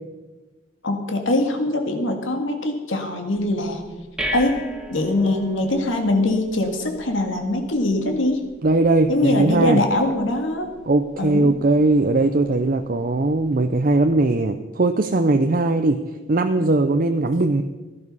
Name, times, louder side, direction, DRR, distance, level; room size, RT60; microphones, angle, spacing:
voice 1, 0.8-3.8 4.3-4.6 4.9-8.4 9.1-10.7 11.2-11.5, left 2 dB, 90° left, 4 dB, 2.0 m, -22 dB
sound 1, 3.4-14.3, equal, 5° right, 1.5 m, -39 dB
voice 2, 8.6-9.8 10.9-16.0 16.3-17.6, right 2 dB, 45° right, 7 dB, 0.6 m, -19 dB
16.0 x 11.5 x 5.5 m, 1.2 s
head